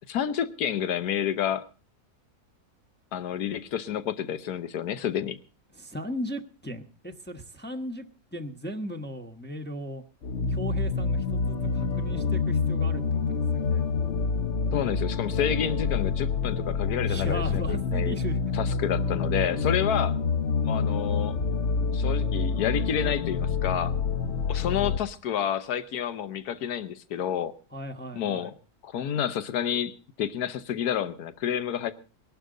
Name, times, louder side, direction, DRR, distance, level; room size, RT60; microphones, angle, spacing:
voice 1, 0.1-1.6 3.1-5.4 14.7-18.2 18.5-20.1 20.6-21.4 21.9-23.9 24.5-27.5 28.1-28.5 28.8-31.9, left 9 dB, 85° left, 12 dB, 1.5 m, -29 dB
voice 2, 5.7-8.1 8.3-10.0 10.5-13.9 17.0-18.4 27.7-28.5, equal, 10° left, 5 dB, 1.0 m, -37 dB
sound 1, 10.2-25.0, left 5 dB, 55° left, 1.1 m, -27 dB
21.0 x 12.0 x 3.9 m, 0.35 s
omnidirectional pair, 1.6 m